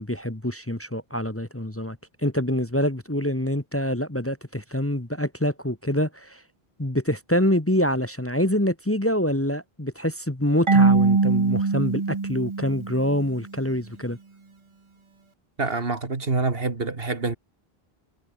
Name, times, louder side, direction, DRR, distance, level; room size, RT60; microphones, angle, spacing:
voice 1, 0.0-6.4 6.8-14.2, left 1 dB, 15° left, 1.4 m, -26 dB
Marimba xylophone / Wood, 10.7-13.4, right 4 dB, 30° right, 1.0 m, -22 dB
voice 2, 15.6-17.4, right 3 dB, 65° right, 2.5 m, -26 dB
omnidirectional pair, 1.0 m